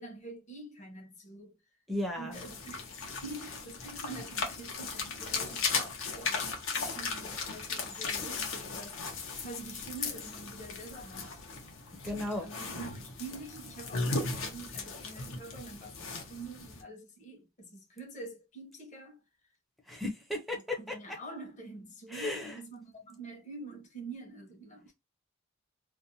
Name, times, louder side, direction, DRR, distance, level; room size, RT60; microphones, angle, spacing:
voice 1, 0.0-1.5 2.2-9.1 9.4-11.4 12.0-19.2 20.8-24.9, right 2 dB, 35° left, 0.9 m, -46 dB
voice 2, 1.9-2.4 12.0-12.5 19.9-20.9 22.1-22.6, left 1 dB, ahead, 0.6 m, -35 dB
sound 1, 2.3-16.8, left 4 dB, 65° left, 0.7 m, -37 dB
2.5 x 2.1 x 2.7 m
head